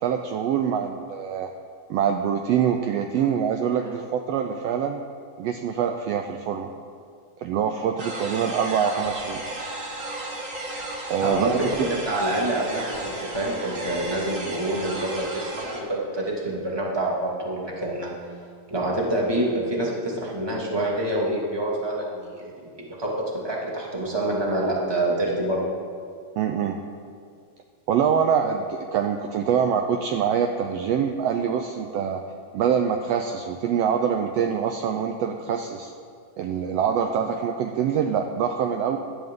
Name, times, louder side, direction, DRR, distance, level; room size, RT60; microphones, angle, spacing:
voice 1, 0.0-1.5 1.9-5.0 5.4-6.7 7.4-9.4 11.1-11.6 26.4-26.8 27.9-32.2 32.5-35.9 36.4-39.0, right 7 dB, 80° right, 5 dB, 1.5 m, -24 dB
sound 1, 8.0-15.8, right 2 dB, 35° right, 1.3 m, -34 dB
voice 2, 11.2-11.5 11.8-18.1 18.7-25.6, right 1 dB, 10° right, -4 dB, 1.6 m, -27 dB
18.0 x 11.5 x 3.8 m, 2.2 s
omnidirectional pair, 3.5 m